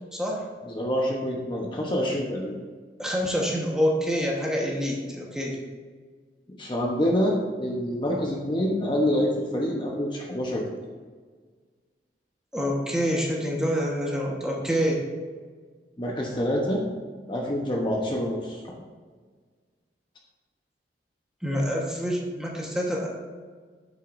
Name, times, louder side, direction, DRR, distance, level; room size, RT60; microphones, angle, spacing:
voice 1, 0.1-0.5 3.0-5.6 12.5-15.0 21.4-23.1, equal, 5° right, -2 dB, 1.3 m, -26 dB
voice 2, 0.7-2.5 6.6-10.7 16.0-16.8 17.3-18.6, equal, 25° left, -1 dB, 1.0 m, -26 dB
9.2 x 8.0 x 2.6 m, 1.5 s
head